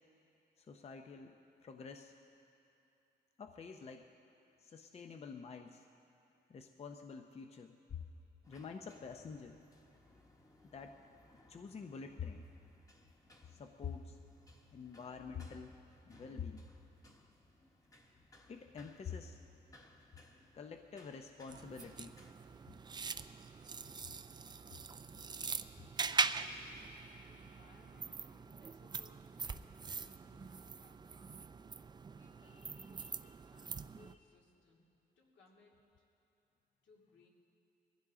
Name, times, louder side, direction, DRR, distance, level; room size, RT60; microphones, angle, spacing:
voice 1, 0.6-1.4 1.6-2.1 3.4-4.1 4.6-5.8 6.5-8.0 8.5-9.6 10.7-11.0 11.5-12.5 13.5-14.2 14.7-15.7 16.1-16.6 18.5-19.4 20.5-22.2 25.3-26.5 32.4-33.1, left 6 dB, 35° left, 5 dB, 0.6 m, -48 dB
sound 1, 8.4-22.3, left 1 dB, 20° left, 1.2 m, -64 dB
sound 2, 21.5-34.2, right 5 dB, 25° right, 0.4 m, -42 dB
voice 2, 27.2-31.2 32.2-34.9 35.2-36.0 36.8-37.3, left 3 dB, 80° left, -3 dB, 2.7 m, -67 dB
21.5 x 15.5 x 3.7 m, 2.8 s
cardioid pair, 135°, 19 cm